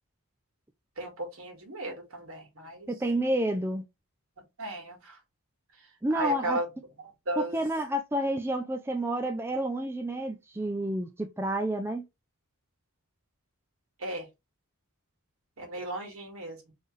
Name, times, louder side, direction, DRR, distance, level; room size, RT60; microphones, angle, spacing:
voice 1, 1.0-2.9 4.4-5.2 5.7-6.7 7.0-7.6 14.0-14.3 15.6-16.7, right 1 dB, 75° right, 2.0 m, -36 dB
voice 2, 2.9-3.8 6.0-6.6 7.4-12.1, right 1 dB, 10° right, 0.4 m, -29 dB
4.5 x 3.3 x 3.2 m
head